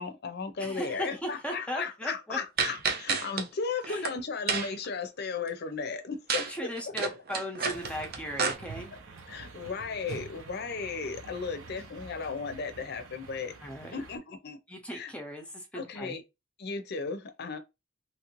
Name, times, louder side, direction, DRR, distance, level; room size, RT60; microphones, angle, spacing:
voice 1, 0.0-6.4 9.3-13.5 13.9-14.6 14.9-15.1 15.7-16.2 16.6-17.6, left 5 dB, 55° left, 0.6 m, -35 dB
voice 2, 0.6-2.4 3.9-4.0 6.4-8.9 13.6-13.9 14.7-16.2, equal, 5° left, 0.6 m, -37 dB
sound 1, 2.6-3.4 3.8-4.1 4.5-4.9 6.3-6.5 6.8-8.5, right 5 dB, 50° right, 0.6 m, -29 dB
sound 2, 7.7-14.2, right 3 dB, 80° right, 0.9 m, -47 dB
3.1 x 2.5 x 3.0 m
head